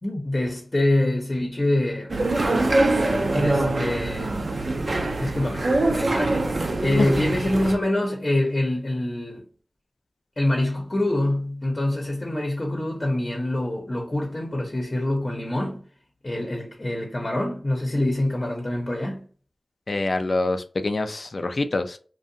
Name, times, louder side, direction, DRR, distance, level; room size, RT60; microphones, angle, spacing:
voice 1, 0.0-2.1 3.3-4.4 5.2-6.4 6.8-9.4 10.4-15.8 16.2-19.2, left 1 dB, 40° left, 0.7 m, -25 dB
sound 1, 2.1-7.7, right 2 dB, 65° right, 0.4 m, -23 dB
voice 2, 19.9-22.0, left 2 dB, 65° left, 0.4 m, -25 dB
2.5 x 2.2 x 2.7 m
cardioid pair, 40°, 0 cm